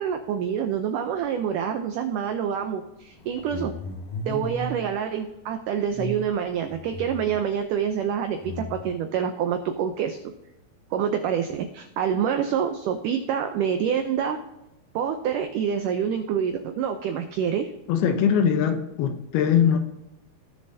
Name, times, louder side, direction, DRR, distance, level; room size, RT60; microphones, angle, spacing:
voice 1, 0.0-3.7 4.3-10.3 10.9-14.4 15.0-17.7, right 8 dB, 90° right, 6 dB, 1.8 m, -27 dB
sound 1, 3.1-4.9 5.9-7.5 8.4-8.9, left 2 dB, 60° left, 3.5 m, -35 dB
voice 2, 17.9-19.8, left 8 dB, 75° left, 7 dB, 2.7 m, -21 dB
18.0 x 6.7 x 2.8 m, 0.92 s
omnidirectional pair, 4.7 m